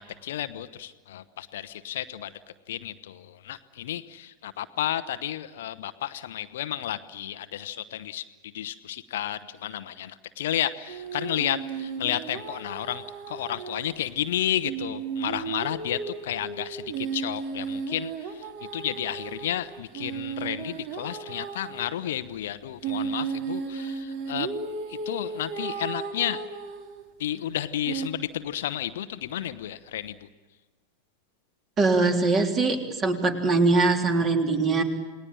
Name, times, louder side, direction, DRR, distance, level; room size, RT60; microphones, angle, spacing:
voice 1, 0.0-2.3 2.7-8.2 8.5-18.4 18.7-24.5 24.9-26.4 27.2-30.3, left 12 dB, 55° left, 12 dB, 0.9 m, -32 dB
sound 1, 10.9-13.8 14.1-14.2 14.6-22.0 22.8-27.0 27.9-28.1, right 5 dB, 45° right, 2.5 m, -34 dB
voice 2, 31.8-34.8, right 3 dB, 25° right, 5 dB, 3.3 m, -22 dB
28.5 x 20.0 x 9.0 m, 1.3 s
figure-of-eight pair, 90°, 0 cm